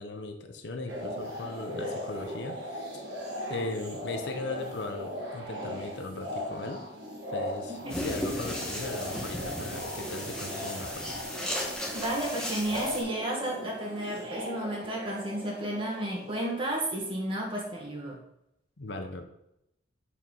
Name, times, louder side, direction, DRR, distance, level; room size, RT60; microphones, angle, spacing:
voice 1, 0.0-3.0 3.5-6.8 7.3-11.1 18.8-19.2, left 2 dB, 65° left, 5 dB, 0.9 m, -38 dB
sound 1, 0.9-17.1, left 1 dB, 60° right, 1.7 m, -38 dB
sound 2, 7.9-13.0, equal, 5° left, 1.3 m, -35 dB
voice 2, 11.9-18.2, right 1 dB, 30° right, -3 dB, 2.0 m, -32 dB
5.5 x 4.9 x 5.6 m, 0.81 s
head